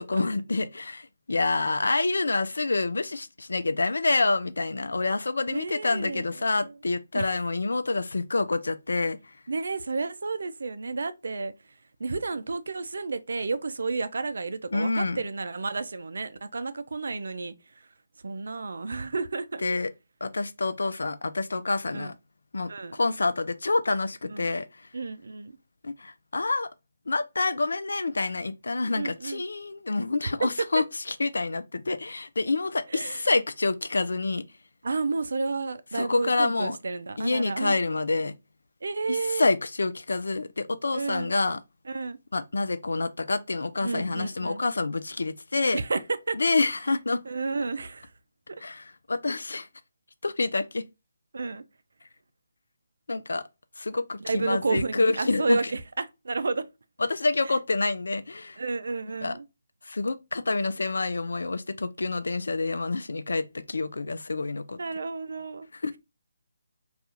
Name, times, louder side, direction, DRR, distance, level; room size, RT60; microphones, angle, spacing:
voice 1, 0.1-9.3 14.7-15.2 19.6-19.9 20.2-22.1 22.5-24.9 25.8-26.7 27.1-34.4 35.9-36.8 37.2-38.3 39.1-41.6 42.3-45.8 46.3-47.2 48.6-49.7 50.2-50.8 53.1-53.4 53.8-55.7 57.1-58.6 59.2-59.4 59.8-64.8 65.8-66.0, left 3 dB, 70° left, 0.3 m, -27 dB
voice 2, 5.5-6.2 6.6-6.7 7.1-7.3 9.5-11.7 12.0-17.9 18.2-19.6 21.9-22.1 22.7-23.0 24.3-24.5 24.9-25.5 28.9-29.4 32.9-33.2 34.8-37.8 38.8-39.5 40.9-41.3 41.9-42.2 43.8-44.6 45.7-46.0 46.3-46.4 47.3-48.1 48.5-48.6 51.3-51.6 54.2-56.7 57.4-57.6 58.6-59.4 64.8-65.7, right 3 dB, 65° right, 0.3 m, -31 dB
2.3 x 2.3 x 2.7 m
figure-of-eight pair, 150°, 0 cm